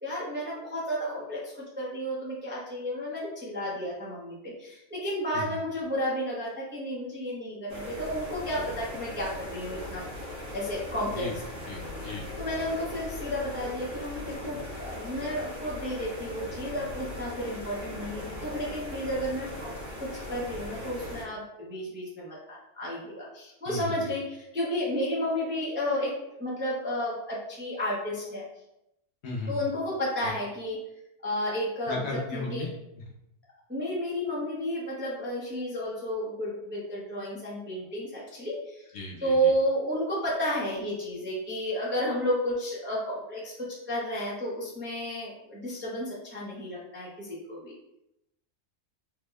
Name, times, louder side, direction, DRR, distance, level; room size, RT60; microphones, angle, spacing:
voice 1, 0.0-10.0 10.5-11.3 12.4-19.7 20.0-28.4 29.5-30.8 31.2-32.7 33.7-38.8 39.2-43.5 43.9-47.7, equal, 15° right, -6 dB, 0.5 m, -32 dB
sound 1, 7.7-21.2, left 1 dB, 70° right, 1.5 m, -39 dB
voice 2, 11.7-12.2 23.7-23.9 29.2-29.6 30.2-30.3 31.9-32.7 38.9-39.4, left 2 dB, 60° left, -3 dB, 0.9 m, -35 dB
3.4 x 2.1 x 3.3 m, 0.84 s
omnidirectional pair, 1.4 m